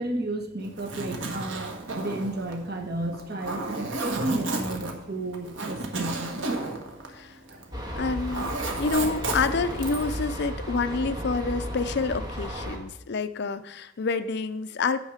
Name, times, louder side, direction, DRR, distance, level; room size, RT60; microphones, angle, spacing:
voice 1, 0.0-6.3 7.5-7.6, right 1 dB, 55° right, 3 dB, 1.4 m, -32 dB
Zipper (clothing), 0.6-7.8 8.0-10.2, right 2 dB, 75° right, 1.5 m, -33 dB
sound 1, 7.7-12.8, equal, 20° right, 1.7 m, -34 dB
voice 2, 8.0-15.0, left 4 dB, 60° left, 12 dB, 0.5 m, -28 dB
9.3 x 7.2 x 5.0 m, 0.81 s
head